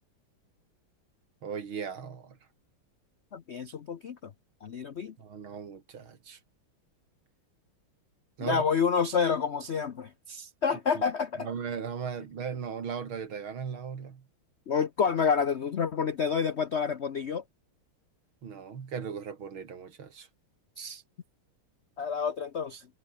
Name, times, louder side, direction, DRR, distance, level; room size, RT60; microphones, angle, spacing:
voice 1, 1.4-2.4 5.2-6.4 8.4-8.6 10.9-11.0 11.4-14.2 18.4-20.3, right 6 dB, 75° right, 3.1 m, -37 dB
voice 2, 3.3-4.3 4.6-5.1 8.4-11.5 14.7-17.4 20.8-21.0 22.0-22.9, left 6 dB, 65° left, 0.6 m, -29 dB
omnidirectional pair, 2.3 m